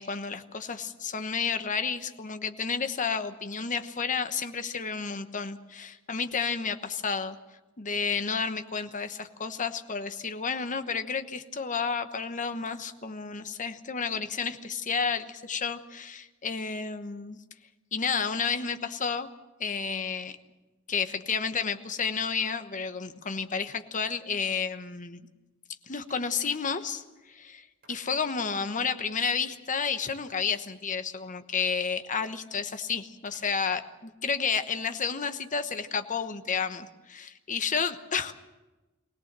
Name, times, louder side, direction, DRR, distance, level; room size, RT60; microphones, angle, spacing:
voice 1, 0.0-7.4 7.8-17.4 17.9-19.3 19.6-20.3 20.9-25.2 25.9-38.3, left 5 dB, 35° left, 9 dB, 1.1 m, -31 dB
sound 1, 26.1-27.1 27.8-28.5 29.8-30.4 31.6-32.0 33.2-33.6 34.6-34.7, right 2 dB, 45° right, 6.5 m, -58 dB
23.5 x 17.5 x 7.5 m, 1.1 s
head